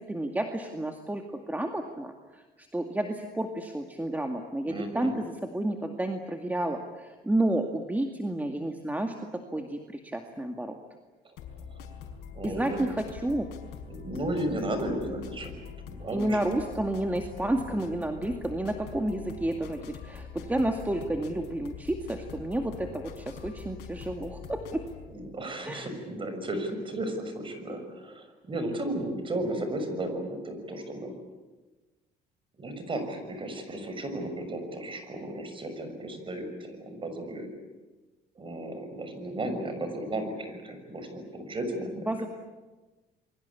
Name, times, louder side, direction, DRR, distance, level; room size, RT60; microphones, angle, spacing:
voice 1, 0.0-10.8 12.4-13.5 16.1-24.8 25.6-25.9 42.1-42.3, right 1 dB, 10° right, 4 dB, 2.2 m, -31 dB
voice 2, 4.7-5.1 12.3-12.8 13.9-15.6 15.9-16.4 25.1-31.1 32.6-37.5 38.4-42.1, right 1 dB, 30° right, 7 dB, 6.4 m, -34 dB
sound 1, 11.4-25.1, left 6 dB, 85° left, 5.0 m, -44 dB
28.5 x 23.0 x 8.5 m, 1.2 s
cardioid pair, 110°, 17 cm